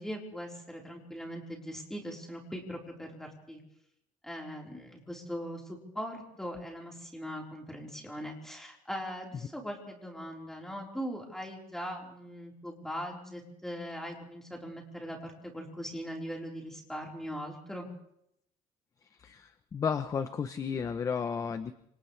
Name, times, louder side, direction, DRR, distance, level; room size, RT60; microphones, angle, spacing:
voice 1, 0.0-3.6 4.2-17.9, equal, 5° left, -1 dB, 4.2 m, -40 dB
voice 2, 19.1-21.7, left 6 dB, 25° left, 10 dB, 0.7 m, -33 dB
29.5 x 27.0 x 3.3 m, 0.76 s
cardioid pair, 165°, 14 cm